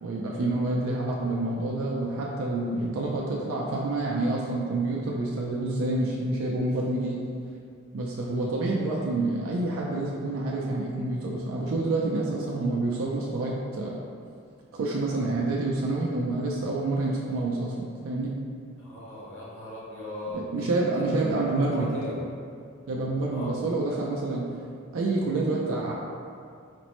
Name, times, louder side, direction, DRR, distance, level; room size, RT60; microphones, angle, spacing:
voice 1, 0.0-7.2 7.9-13.9 14.7-18.3 20.3-21.9 22.9-24.6 24.9-25.9, right 2 dB, 85° right, -3 dB, 0.4 m, -28 dB
voice 2, 18.8-22.2 23.3-23.5, left 1 dB, 70° left, -6 dB, 1.0 m, -38 dB
5.1 x 2.0 x 2.9 m, 2.3 s
head